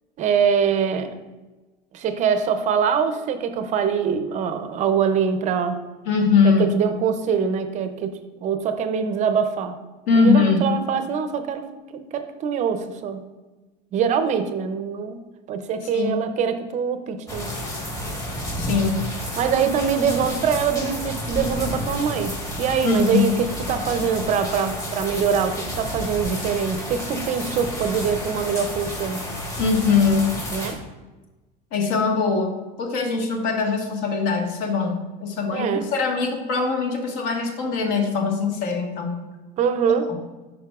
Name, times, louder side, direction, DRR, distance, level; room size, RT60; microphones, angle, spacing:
voice 1, 0.2-1.1 1.9-5.8 6.4-9.8 10.2-13.2 13.9-15.2 15.5-17.6 19.4-29.2 30.5-30.8 35.5-35.9 39.6-40.1, right 7 dB, 35° right, 9 dB, 0.5 m, -24 dB
voice 2, 6.0-6.7 10.1-10.7 15.8-16.1 18.6-19.1 22.8-23.3 29.6-30.3 31.7-39.2 40.1-40.2, left 4 dB, 65° left, 2 dB, 1.4 m, -21 dB
sound 1, 17.3-30.7, left 1 dB, 15° left, 1.3 m, -31 dB
9.6 x 5.2 x 2.4 m, 1.2 s
supercardioid pair, 145°, 21 cm